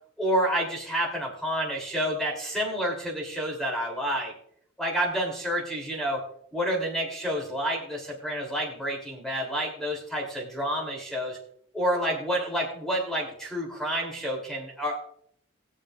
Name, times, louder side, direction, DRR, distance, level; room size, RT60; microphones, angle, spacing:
voice 1, 0.2-4.3 4.8-6.2 6.5-11.4 11.7-15.0, equal, ahead, -1 dB, 3.3 m, -29 dB
21.0 x 7.3 x 2.6 m, 0.65 s
head